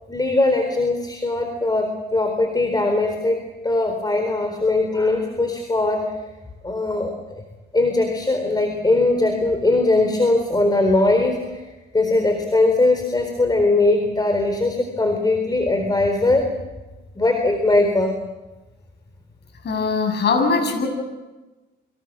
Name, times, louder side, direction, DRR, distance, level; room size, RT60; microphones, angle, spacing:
voice 1, 0.0-6.1 6.6-7.4 7.7-11.7 11.9-16.5 17.2-18.1, left 2 dB, 20° left, 5 dB, 4.0 m, -20 dB
voice 2, 19.6-20.9, left 4 dB, 60° left, 5 dB, 7.9 m, -21 dB
29.5 x 25.0 x 6.4 m, 1.1 s
cardioid pair, 90°, 20 cm